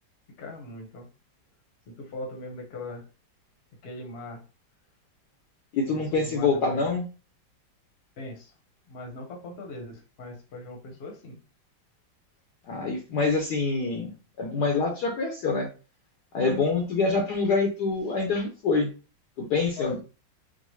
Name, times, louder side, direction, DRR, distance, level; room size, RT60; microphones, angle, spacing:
voice 1, 0.4-1.1 1.9-3.1 3.8-4.4 5.9-6.9 8.2-8.5 8.9-11.4 19.8-20.0, left 2 dB, 45° left, 2 dB, 0.9 m, -40 dB
voice 2, 5.7-7.0 12.7-15.7 16.3-18.9 19.4-20.0, left 4 dB, 65° left, 2 dB, 1.1 m, -26 dB
3.8 x 2.2 x 3.1 m, 0.33 s
omnidirectional pair, 2.1 m